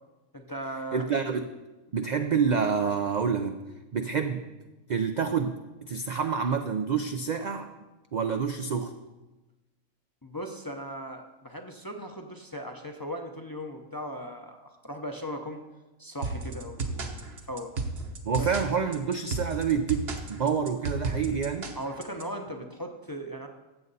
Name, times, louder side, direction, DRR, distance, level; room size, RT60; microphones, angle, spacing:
voice 1, 0.3-1.0 2.1-2.2 10.2-15.6 16.0-17.7 18.4-18.6 21.7-23.5, equal, 20° left, 3 dB, 0.6 m, -38 dB
voice 2, 0.9-1.5 1.9-3.6 3.9-4.4 4.9-7.7 8.1-8.9 18.3-21.7, right 6 dB, 70° right, 7 dB, 0.4 m, -28 dB
sound 1, 16.2-22.2, right 3 dB, 50° right, 1.1 m, -33 dB
15.0 x 7.5 x 4.1 m, 1.1 s
omnidirectional pair, 1.4 m